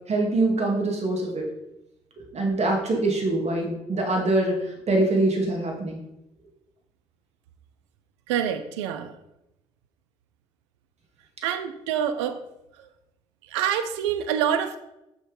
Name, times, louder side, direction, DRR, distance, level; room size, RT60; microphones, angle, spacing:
voice 1, 0.1-1.5 2.2-6.0, right 2 dB, 50° right, 1 dB, 2.3 m, -24 dB
voice 2, 8.3-9.1 11.4-12.4 13.5-14.8, right 9 dB, 90° right, 9 dB, 0.5 m, -26 dB
6.4 x 4.3 x 5.2 m, 0.88 s
hypercardioid pair, 45°, 15 cm